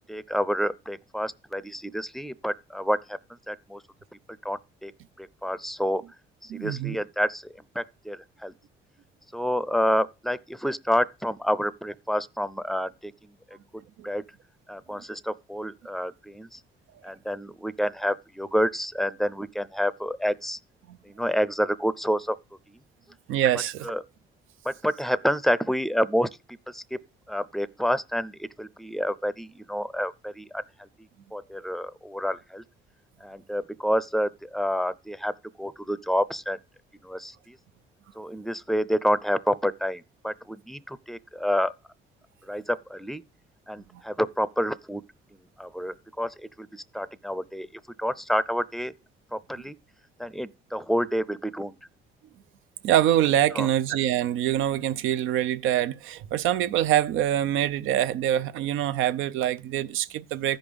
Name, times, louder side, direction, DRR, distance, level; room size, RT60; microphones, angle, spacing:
voice 1, 0.0-3.2 3.5-3.8 4.4-4.9 5.2-6.0 6.4-8.5 9.3-13.1 14.0-14.2 14.7-16.6 17.0-20.6 21.1-22.4 23.8-24.0 24.6-26.3 26.7-27.0 27.3-30.6 31.3-32.6 33.2-35.3 35.6-36.6 37.0-37.6 38.2-41.7 42.5-43.2 43.7-45.0 45.6-47.7 48.0-48.9 49.3-49.7 50.2-51.8 53.6-53.7, equal, ahead, 0.5 m, -28 dB
voice 2, 6.5-7.0 14.0-14.1 20.9-21.0 23.3-23.9 43.9-44.0 52.8-60.6, right 11 dB, 85° right, 0.6 m, -25 dB
14.0 x 5.2 x 5.2 m
cardioid pair, 90°, 20 cm